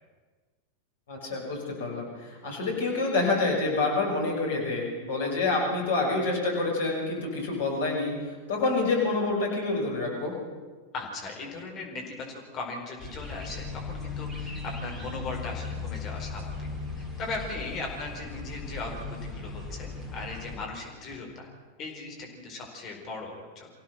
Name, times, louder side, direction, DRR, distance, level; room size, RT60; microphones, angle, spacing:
voice 1, 1.1-8.2 8.5-10.3, left 3 dB, 65° left, -1 dB, 5.9 m, -27 dB
voice 2, 10.9-16.7 17.0-21.5 21.8-23.7, left 3 dB, 35° left, 0 dB, 4.7 m, -38 dB
sound 1, 13.0-20.6, left 4 dB, 10° right, 4.4 m, -37 dB
25.5 x 16.5 x 6.6 m, 1.4 s
figure-of-eight pair, 90°, 0 cm